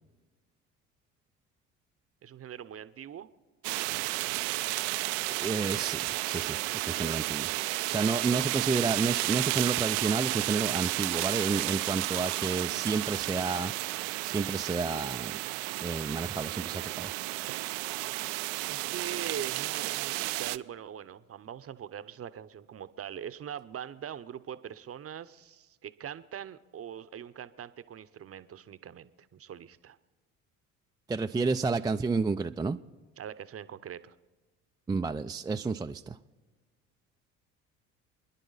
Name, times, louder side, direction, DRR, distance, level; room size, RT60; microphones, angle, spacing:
voice 1, 2.2-3.3 18.6-30.0 33.2-34.1, right 9 dB, 35° right, 14 dB, 0.8 m, -42 dB
sound 1, 3.6-20.6, right 20 dB, 70° right, 0.6 m, -32 dB
voice 2, 5.4-7.5 7.9-13.7 14.2-15.3 15.8-17.1 31.1-32.8 34.9-36.2, right 4 dB, 10° right, 6 dB, 0.4 m, -30 dB
28.5 x 10.5 x 4.1 m, 1.3 s
hypercardioid pair, 60°, 40 cm